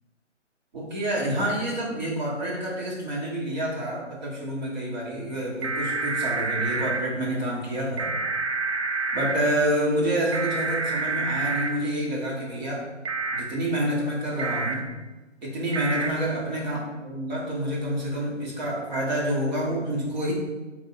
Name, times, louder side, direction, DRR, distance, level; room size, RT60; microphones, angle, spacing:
voice 1, 0.7-8.1 9.1-12.8 13.3-14.9 15.4-20.3, right 1 dB, 35° right, -5 dB, 1.5 m, -28 dB
sound 1, 5.6-7.0 8.0-9.3 10.3-11.7 13.0-13.4 14.4-14.7 15.7-16.1, right 3 dB, 60° right, 0.7 m, -28 dB
4.5 x 2.7 x 4.2 m, 1.2 s
hypercardioid pair, 160°, 37 cm